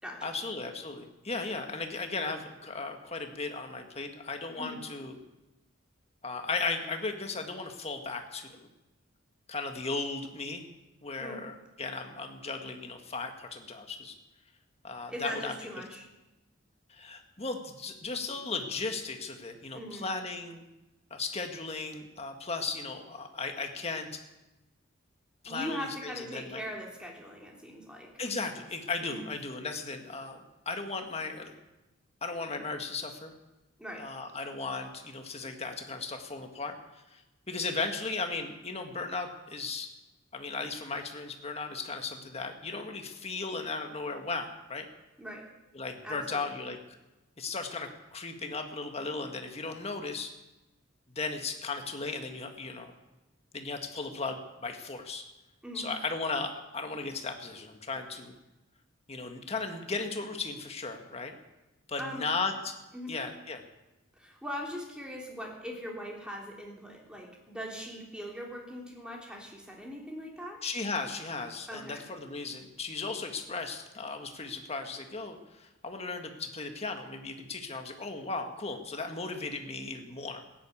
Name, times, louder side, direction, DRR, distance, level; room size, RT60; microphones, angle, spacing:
voice 1, 0.2-5.2 6.2-8.6 9.5-10.6 11.0-14.1 14.8-15.5 16.9-20.6 21.1-24.2 25.4-26.6 28.2-30.4 30.6-31.5 32.2-33.3 34.0-37.2 37.5-39.9 40.3-44.9 45.7-46.8 47.4-50.3 51.1-52.9 53.5-55.3 55.7-58.3 59.1-61.3 61.9-62.8 63.1-63.6 70.6-80.4, left 3 dB, 30° left, 5 dB, 1.7 m, -36 dB
voice 2, 15.1-16.1 19.7-20.1 25.5-28.1 29.0-29.3 33.8-34.0 45.2-45.5 46.0-46.6 55.6-55.9 62.0-62.3 62.9-63.1 64.2-70.6 71.7-72.0, equal, 5° right, -1 dB, 3.3 m, -40 dB
15.5 x 10.5 x 8.5 m, 1.0 s
head